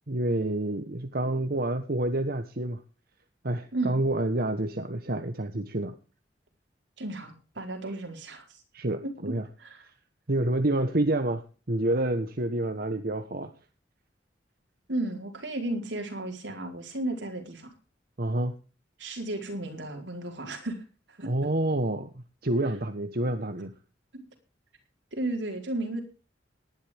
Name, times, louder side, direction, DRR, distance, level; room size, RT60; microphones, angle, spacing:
voice 1, 0.1-2.8 3.4-6.0 8.7-9.4 10.3-13.5 18.2-18.6 21.2-23.7, right 1 dB, 55° right, 8 dB, 1.2 m, -28 dB
voice 2, 7.0-8.6 9.0-9.8 14.9-17.7 19.0-20.8 21.1-21.3 24.1-24.3 25.1-26.0, right 2 dB, 80° right, 3 dB, 4.5 m, -34 dB
19.0 x 11.0 x 3.5 m, 0.35 s
head